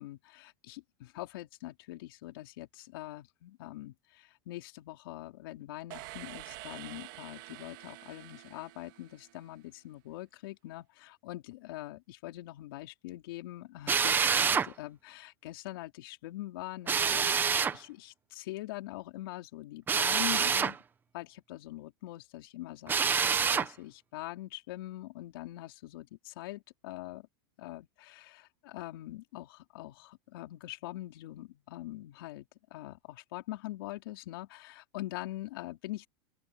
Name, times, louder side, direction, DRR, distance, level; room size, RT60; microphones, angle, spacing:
voice 1, 0.0-20.8 21.1-27.3 27.6-36.1, left 17 dB, 70° left, 3.6 m, -43 dB
sound 1, 5.9-9.7, right 22 dB, 60° right, 3.3 m, -48 dB
Drill, 13.9-14.7 16.9-17.8 19.9-20.8 22.9-23.7, right 6 dB, 15° right, 0.9 m, -27 dB
open air
supercardioid pair, 150°, 12 cm